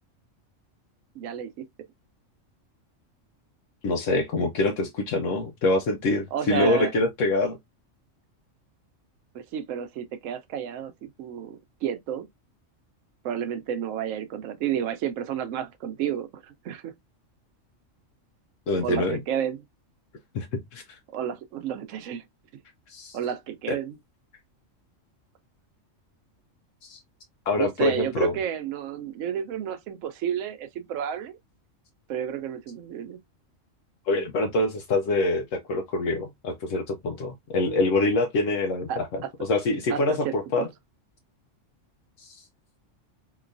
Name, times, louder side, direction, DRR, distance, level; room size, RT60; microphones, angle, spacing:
voice 1, 1.1-1.7 6.3-6.9 9.3-12.3 13.2-16.9 18.8-19.6 21.1-22.2 23.1-24.0 27.6-31.4 32.1-33.2 38.9-39.3 39.9-40.7, right 9 dB, 75° right, 1.0 m, -31 dB
voice 2, 3.8-7.6 18.7-19.2 20.3-20.5 20.7-21.0 22.9-23.2 23.7-23.8 26.8-27.0 27.5-28.3 34.1-40.7 42.2-42.5, left 2 dB, 75° left, 1.0 m, -25 dB
3.8 x 2.9 x 2.5 m
omnidirectional pair, 1.3 m